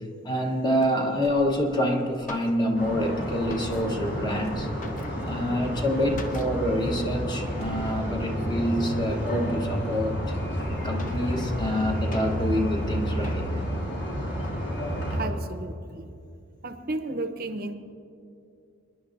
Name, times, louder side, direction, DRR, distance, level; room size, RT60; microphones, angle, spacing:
voice 1, 0.2-4.7 5.2-10.3 10.8-13.5, equal, 20° left, 2 dB, 1.1 m, -27 dB
sound 1, 0.8-0.9 1.6-1.7 1.9-2.0 2.2-3.0 3.3-4.1 4.4-5.5 6.2-6.7 7.0-7.1 7.5-7.7 8.3-8.8 9.4-9.5 10.1-10.2 10.6-12.6 13.2-13.7 14.2-14.6, left 2 dB, 40° left, 0.9 m, -44 dB
sound 2, 1.2-1.8 2.1-2.7 3.0-12.0, equal, 75° left, 2.0 m, -48 dB
sound 3, 2.8-15.3, equal, 60° left, 3.7 m, -30 dB
voice 2, 15.1-16.1 16.6-17.7, right 2 dB, 50° right, 7 dB, 0.7 m, -33 dB
25.5 x 10.5 x 2.6 m, 2.5 s
head